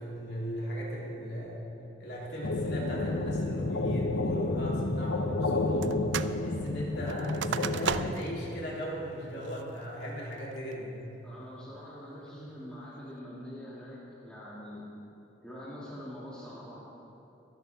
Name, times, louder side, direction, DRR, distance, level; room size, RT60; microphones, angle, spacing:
voice 1, 0.0-1.6 2.0-5.9 6.4-11.0, equal, 60° left, -5 dB, 3.2 m, -37 dB
sound 1, 2.4-8.1, left 2 dB, 85° left, 0.7 m, -30 dB
sound 2, 5.8-6.4 6.7-8.4 8.8-8.9 9.4-9.8 10.3-10.7, right 7 dB, 75° right, 0.4 m, -35 dB
voice 2, 11.2-14.8 15.4-16.8, equal, 5° left, -9 dB, 2.4 m, -44 dB
23.5 x 11.0 x 3.5 m, 2.8 s
head